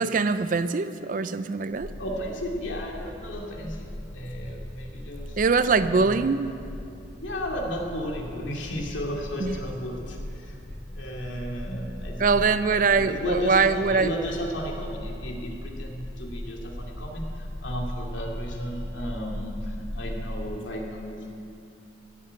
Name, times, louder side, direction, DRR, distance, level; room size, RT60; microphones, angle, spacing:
voice 1, 0.0-1.9 5.4-6.5 9.4-9.6 12.2-14.1, right 4 dB, 45° right, 12 dB, 0.4 m, -23 dB
sound 1, 1.7-20.6, left 1 dB, 10° left, 0.5 m, -38 dB
voice 2, 2.0-5.4 5.7-6.1 7.2-10.6 10.9-12.4 12.9-21.3, equal, 80° left, 0 dB, 2.3 m, -34 dB
15.0 x 7.5 x 9.4 m, 2.6 s
head